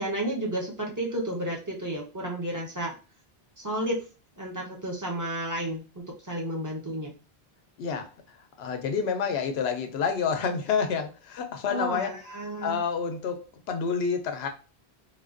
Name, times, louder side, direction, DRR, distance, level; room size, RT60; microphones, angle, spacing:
voice 1, 0.0-3.0 3.6-4.0 4.4-7.1 11.7-12.8, right 1 dB, 20° right, -2 dB, 0.7 m, -32 dB
voice 2, 7.8-8.1 8.6-12.1 12.6-14.5, left 6 dB, 85° left, 6 dB, 0.8 m, -28 dB
3.5 x 2.4 x 2.4 m, 0.33 s
omnidirectional pair, 1.0 m